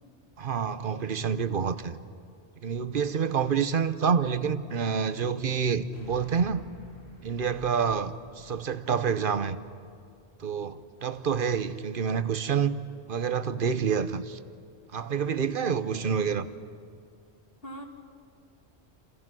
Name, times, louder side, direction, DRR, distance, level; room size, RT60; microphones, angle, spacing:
voice 1, 0.4-2.0 2.6-6.6 7.2-9.6 10.4-12.8 13.1-14.4 14.9-16.5, right 6 dB, 50° right, 1.0 m, -28 dB
sound 1, 5.9-10.4, equal, 70° left, 6.7 m, -51 dB
voice 2, 15.8-16.2 17.6-17.8, equal, 55° left, 2.9 m, -42 dB
29.5 x 27.0 x 6.1 m
omnidirectional pair, 1.2 m